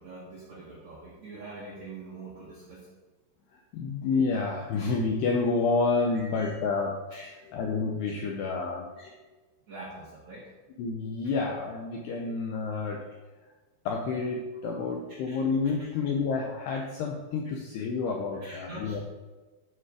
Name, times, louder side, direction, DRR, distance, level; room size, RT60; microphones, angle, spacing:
voice 1, 0.0-2.9 3.8-3.9 4.6-4.7 6.1-6.5 7.1-7.3 8.0-8.1 9.0-9.1 9.7-10.5 11.2-11.3 14.6-14.8 15.3-15.4 15.8-15.9 18.3-19.0, right 2 dB, 70° right, -5 dB, 1.7 m, -45 dB
voice 2, 3.5-8.9 10.8-13.0 13.9-19.0, left 4 dB, 80° left, 1 dB, 2.4 m, -29 dB
14.0 x 5.1 x 4.9 m, 1.2 s
omnidirectional pair, 5.8 m